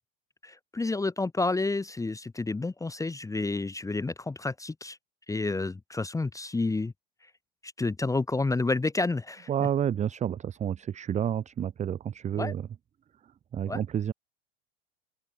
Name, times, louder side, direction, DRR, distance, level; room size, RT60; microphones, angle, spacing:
voice 1, 0.4-5.0 5.3-6.9 7.8-9.5 12.4-12.5 13.7-13.8, left 3 dB, 10° left, 1.2 m, -30 dB
voice 2, 9.5-12.7 13.5-14.1, right 9 dB, 25° right, 0.7 m, -30 dB
open air
hypercardioid pair, 90°, 31 cm